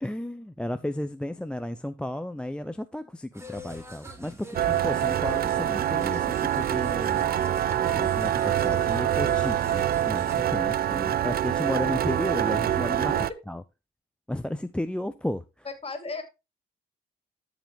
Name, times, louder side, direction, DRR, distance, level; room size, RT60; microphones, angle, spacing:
voice 1, 0.0-7.3 7.9-10.3 10.5-13.1 13.5-13.6 14.3-15.4, left 1 dB, 5° left, 0.5 m, -33 dB
sound 1, 3.3-10.4, right 1 dB, 15° right, 2.1 m, -43 dB
sound 2, 4.5-13.3, right 11 dB, 50° right, 0.5 m, -25 dB
voice 2, 15.6-16.2, left 3 dB, 30° left, 2.6 m, -34 dB
13.0 x 5.0 x 3.5 m
cardioid pair, 90°, 20 cm